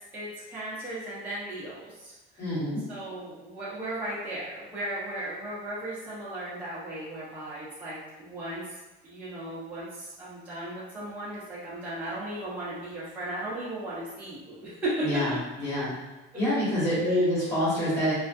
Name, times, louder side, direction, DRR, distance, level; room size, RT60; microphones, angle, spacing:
voice 1, 0.1-2.6 2.9-8.6 9.0-15.1 17.1-17.2, right 1 dB, 10° right, -10 dB, 0.4 m, -36 dB
voice 2, 2.4-2.8 15.0-15.3 15.6-15.9 16.3-18.1, equal, 15° left, -11 dB, 1.1 m, -26 dB
2.4 x 2.2 x 2.4 m, 1.1 s
cardioid pair, 180°, 21 cm